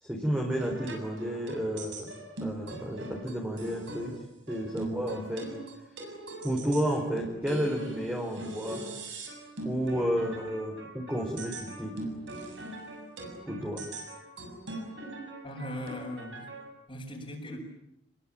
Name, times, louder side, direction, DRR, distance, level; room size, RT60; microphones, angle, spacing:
voice 1, 0.0-2.1 2.4-4.2 4.5-5.5 6.4-8.8 9.6-12.0 13.5-13.8, equal, 10° right, -1 dB, 4.8 m, -31 dB
sound 1, 0.5-16.7, right 2 dB, 80° right, 7.1 m, -41 dB
voice 2, 15.4-16.5 16.9-17.6, equal, 30° left, -5 dB, 6.3 m, -39 dB
28.5 x 22.5 x 9.2 m, 0.79 s
head